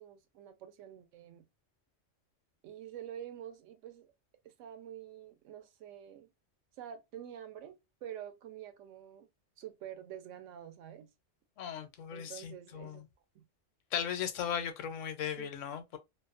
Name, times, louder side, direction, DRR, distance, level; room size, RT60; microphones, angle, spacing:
voice 1, 0.0-1.4 2.6-4.1 4.4-6.3 6.8-9.3 9.6-11.1 12.1-13.0 13.3-13.5 15.4-15.5, right 10 dB, 80° right, 0.9 m, -47 dB
voice 2, 11.6-13.0 13.9-16.0, left 8 dB, 80° left, 1.0 m, -37 dB
2.6 x 2.1 x 2.4 m
omnidirectional pair, 1.3 m